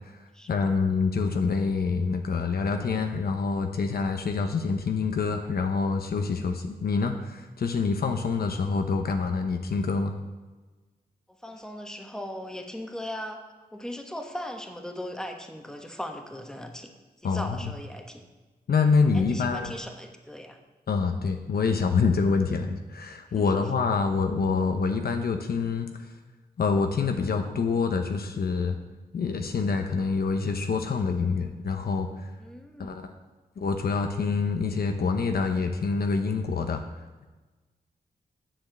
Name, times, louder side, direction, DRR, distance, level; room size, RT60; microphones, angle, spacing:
voice 1, 0.5-10.1 17.2-17.7 18.7-19.7 20.9-25.9 26.6-28.8 29.1-32.3 32.8-33.1 33.6-36.8, left 4 dB, 70° left, 5 dB, 0.9 m, -26 dB
voice 2, 11.3-13.4 13.7-16.9 17.2-18.2 19.1-20.6 23.3-23.7 32.4-33.0, left 1 dB, 5° left, 3 dB, 1.2 m, -38 dB
7.6 x 7.2 x 6.6 m, 1.2 s
cardioid pair, 70°, 16 cm